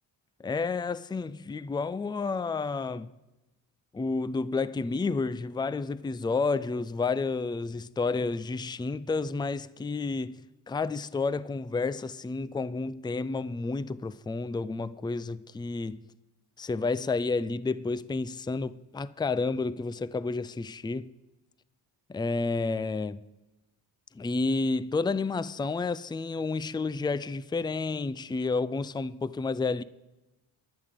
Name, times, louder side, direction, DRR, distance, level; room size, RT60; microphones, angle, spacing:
voice 1, 0.4-3.1 3.9-16.0 16.6-21.1 22.1-23.2 24.1-29.8, left 3 dB, 10° left, 0.5 m, -30 dB
19.5 x 11.5 x 5.2 m
supercardioid pair, 60°, 47 cm